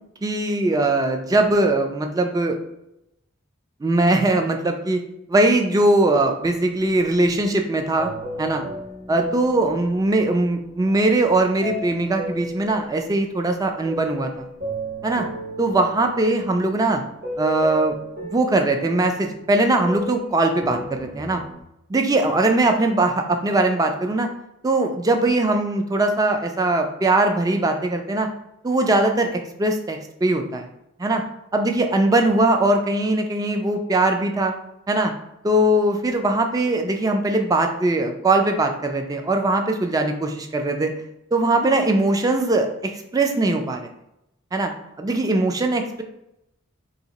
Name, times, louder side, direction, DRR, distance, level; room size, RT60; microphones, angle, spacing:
voice 1, 0.2-2.6 3.8-5.0 5.3-8.1 8.4-8.7 9.1-14.5 15.0-15.3 15.6-17.0 17.4-18.0 18.2-21.4 21.9-24.3 24.6-28.3 28.6-30.7 31.0-31.2 31.5-34.5 34.9-35.1 35.4-41.0 41.3-43.9 44.5-44.7 45.0-46.0, right 2 dB, 20° right, 4 dB, 0.3 m, -21 dB
sound 1, 8.0-13.1 13.6-21.6, equal, 50° right, 1.0 m, -35 dB
2.8 x 2.7 x 4.0 m, 0.85 s
head